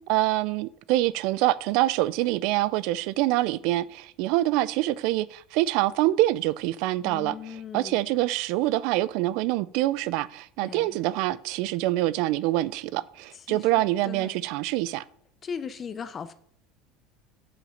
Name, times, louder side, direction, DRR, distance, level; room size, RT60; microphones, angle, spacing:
voice 1, 0.1-15.0, right 16 dB, 65° right, 0.4 m, -25 dB
voice 2, 7.0-8.0 10.6-11.0 13.5-14.4 15.4-16.3, left 6 dB, 30° left, 0.6 m, -38 dB
7.1 x 5.8 x 5.7 m
supercardioid pair, 135°, 0 cm